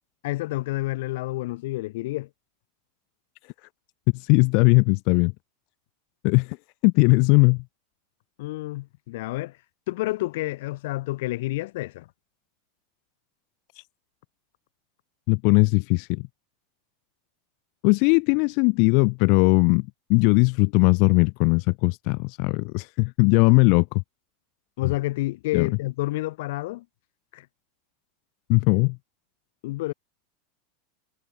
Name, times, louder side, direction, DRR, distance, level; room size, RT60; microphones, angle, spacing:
voice 1, 0.2-2.3 8.4-9.6 9.9-12.1 24.8-26.8 27.3-27.4 29.6-29.9, left 19 dB, 60° left, 3.3 m, -29 dB
voice 2, 4.1-5.3 6.2-6.6 6.8-7.6 13.8-13.9 15.3-16.2 17.8-24.0 24.9-25.0 25.5-25.7 28.5-29.0, left 37 dB, 45° left, 0.4 m, -19 dB
supercardioid pair, 170°, 0 cm